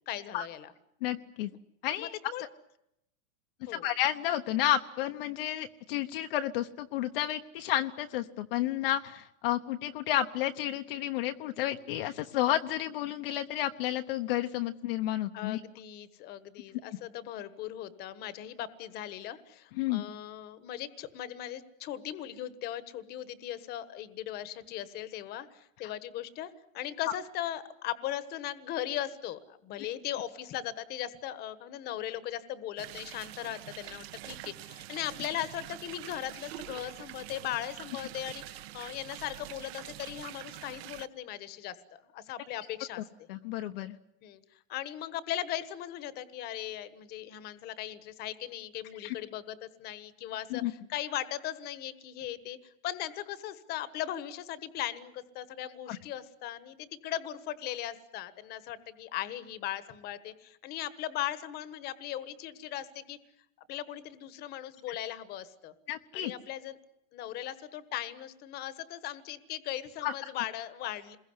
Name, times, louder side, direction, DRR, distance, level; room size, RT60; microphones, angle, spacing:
voice 1, 0.1-0.7 2.0-2.4 3.7-3.9 15.3-43.0 44.2-44.4 44.7-63.2 63.7-65.7 66.1-66.8 67.1-71.2, left 12 dB, 25° left, 14 dB, 1.4 m, -38 dB
voice 2, 1.0-1.5 1.8-2.2 3.7-15.6 19.8-20.0 43.3-44.0 49.0-49.1 50.5-50.7 55.9-56.0 65.9-66.3 70.0-70.1, left 13 dB, 45° left, 6 dB, 1.0 m, -31 dB
sound 1, 32.8-41.1, right 15 dB, 50° right, 1.2 m, -45 dB
28.0 x 22.0 x 9.7 m, 0.83 s
supercardioid pair, 175°, 40 cm